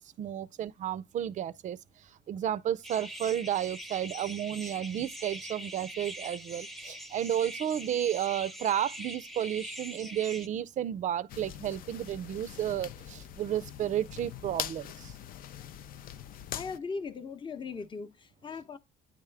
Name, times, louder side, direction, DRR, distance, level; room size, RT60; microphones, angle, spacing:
voice 1, 0.2-1.8 2.3-15.1, right 10 dB, 45° right, 0.4 m, -32 dB
sound 1, 2.8-10.5, right 1 dB, ahead, 0.7 m, -43 dB
sound 2, 11.3-16.8, left 10 dB, 60° left, 0.5 m, -42 dB
voice 2, 16.5-18.8, left 4 dB, 30° left, 0.7 m, -39 dB
9.6 x 3.6 x 3.3 m
cardioid pair, 110°, 17 cm